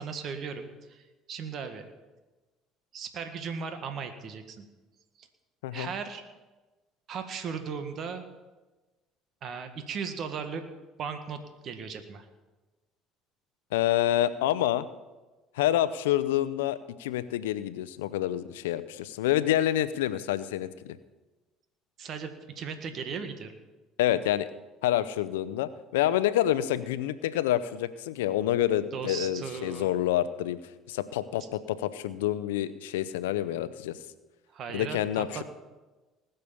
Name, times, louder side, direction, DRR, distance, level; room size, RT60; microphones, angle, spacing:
voice 1, 0.0-1.8 2.9-4.7 5.2-5.3 5.7-6.2 7.1-8.2 9.4-10.6 11.0-12.2 22.0-23.5 28.9-29.9 34.5-35.4, right 6 dB, 55° right, 7 dB, 1.7 m, -37 dB
voice 2, 13.7-14.9 15.6-21.0 24.0-24.5 24.8-30.6 30.9-34.0 34.7-35.4, left 12 dB, 85° left, 14 dB, 0.6 m, -27 dB
19.5 x 6.7 x 7.1 m, 1.2 s
hypercardioid pair, 70°, 0 cm